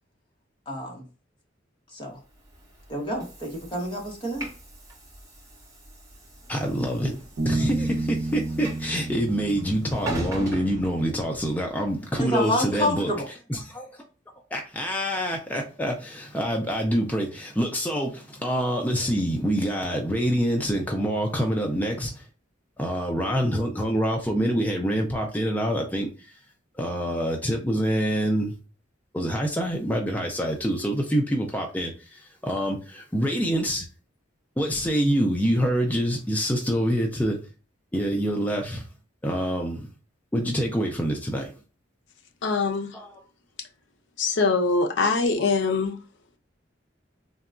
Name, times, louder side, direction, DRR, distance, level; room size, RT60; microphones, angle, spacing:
voice 1, 0.7-1.0 1.9-2.2 2.9-4.5 12.2-13.3, left 1 dB, 25° left, 1.0 m, -28 dB
Train / Sliding door, 2.3-11.6, right 1 dB, 20° right, 0.8 m, -40 dB
voice 2, 6.5-7.2 7.4-13.1 13.5-14.0 14.5-22.3 22.8-26.3 26.7-28.5 29.1-33.9 34.6-37.4 37.9-38.9 39.2-39.9 40.3-41.5 42.9-43.2, equal, 10° left, 0.4 m, -26 dB
Bass guitar, 7.4-10.9, right 2 dB, 65° right, 0.7 m, -31 dB
voice 3, 42.4-42.9 44.2-46.0, left 4 dB, 65° left, 0.5 m, -23 dB
3.9 x 2.2 x 2.4 m
head